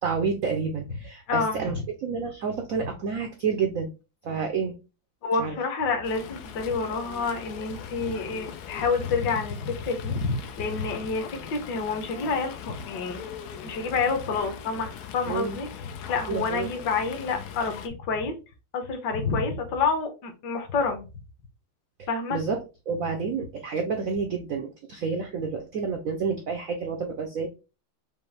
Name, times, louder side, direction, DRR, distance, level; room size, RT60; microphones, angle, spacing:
voice 1, 0.0-3.9 4.2-4.8 5.4-5.6 15.3-15.6 16.3-16.7 22.0-22.6 22.9-27.5, right 5 dB, 80° right, 3 dB, 0.7 m, -29 dB
voice 2, 1.3-1.7 5.2-13.3 13.6-15.7 16.1-18.3 18.7-21.0 22.1-22.4, left 4 dB, 60° left, 5 dB, 1.5 m, -28 dB
Fowl, 6.0-17.9, left 8 dB, 75° left, 0.9 m, -40 dB
5.3 x 2.6 x 3.3 m, 0.30 s
omnidirectional pair, 2.3 m